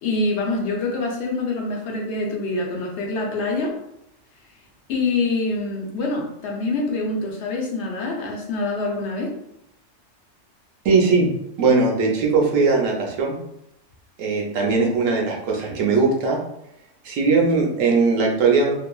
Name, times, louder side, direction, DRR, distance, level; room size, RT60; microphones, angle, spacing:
voice 1, 0.0-3.7 4.9-9.3, left 3 dB, 65° left, 0 dB, 0.8 m, -25 dB
voice 2, 10.8-11.3 11.6-13.4 14.2-16.4 17.0-18.7, right 4 dB, 85° right, -1 dB, 1.0 m, -19 dB
2.8 x 2.4 x 2.2 m, 0.79 s
omnidirectional pair, 1.3 m